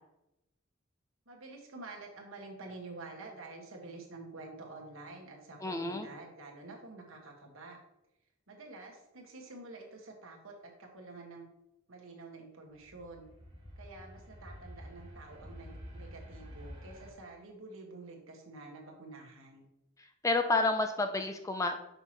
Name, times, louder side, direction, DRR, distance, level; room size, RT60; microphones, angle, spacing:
voice 1, 1.3-7.8 8.5-11.5 11.9-13.3 13.8-19.6, right 2 dB, 80° right, 0 dB, 1.5 m, -48 dB
voice 2, 5.6-6.1 20.0-21.8, left 2 dB, 15° left, 6 dB, 0.4 m, -30 dB
sound 1, 12.7-17.1, equal, 25° right, 1.7 m, -49 dB
6.8 x 5.6 x 2.9 m, 0.87 s
head